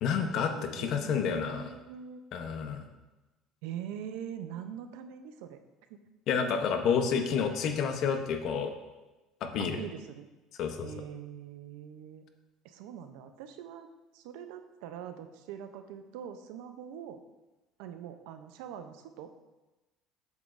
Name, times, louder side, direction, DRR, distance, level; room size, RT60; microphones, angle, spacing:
voice 1, 0.0-1.7 2.3-2.8 6.3-8.7 9.4-9.8 10.6-10.9, left 6 dB, 55° left, 6 dB, 0.8 m, -29 dB
voice 2, 0.5-2.2 3.6-5.6 5.9-6.0 9.6-10.3 10.8-12.2 12.6-17.2 17.8-19.3, right 9 dB, 85° right, 8 dB, 0.6 m, -43 dB
8.0 x 7.2 x 2.6 m, 1.1 s
cardioid pair, 135°, 0 cm